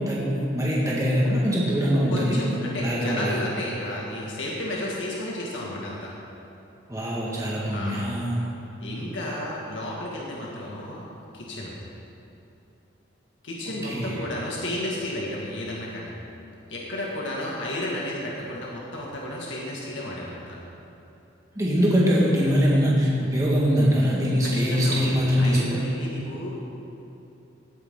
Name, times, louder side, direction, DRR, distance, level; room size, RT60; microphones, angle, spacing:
voice 1, 0.1-3.4 6.9-8.5 13.7-14.2 21.6-25.9, equal, 20° right, -6 dB, 1.8 m, -23 dB
voice 2, 2.1-6.1 7.6-8.1 8.8-11.1 11.3-11.7 13.4-16.1 16.7-20.6 24.4-26.5, left 1 dB, 85° left, -4 dB, 2.0 m, -32 dB
17.0 x 9.6 x 3.8 m, 2.9 s
head